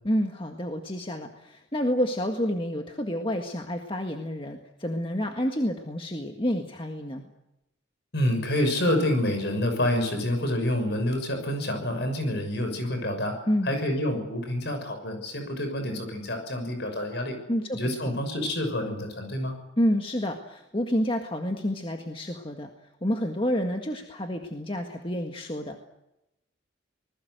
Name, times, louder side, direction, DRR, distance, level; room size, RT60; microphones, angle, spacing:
voice 1, 0.0-7.3 13.5-13.7 17.5-18.1 19.8-22.7 23.0-25.8, equal, 25° left, 4 dB, 1.8 m, -29 dB
voice 2, 8.1-13.4 13.6-17.4 17.7-19.5, left 1 dB, 55° left, 6 dB, 6.4 m, -27 dB
26.0 x 20.5 x 8.0 m, 0.89 s
head